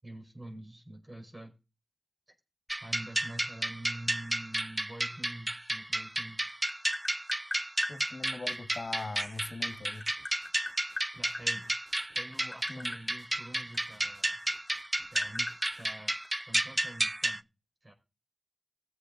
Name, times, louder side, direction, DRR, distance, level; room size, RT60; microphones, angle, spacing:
voice 1, 0.0-1.6 2.8-6.6 11.1-11.7 12.1-14.4 15.1-16.1 16.4-17.4 17.8-17.9, right 1 dB, 40° right, 4.7 m, -46 dB
sound 1, 2.7-17.4, right 1 dB, 20° right, 0.5 m, -32 dB
Tap, 6.1-8.0 9.3-11.5 12.2-14.4 14.7-16.7, left 2 dB, 30° left, 2.3 m, -41 dB
voice 2, 7.9-10.0 12.7-12.9, left 3 dB, 75° left, 1.4 m, -41 dB
sound 2, 8.3-15.9, right 1 dB, 60° right, 3.1 m, -62 dB
19.5 x 7.9 x 2.5 m
cardioid pair, 45°, 0 cm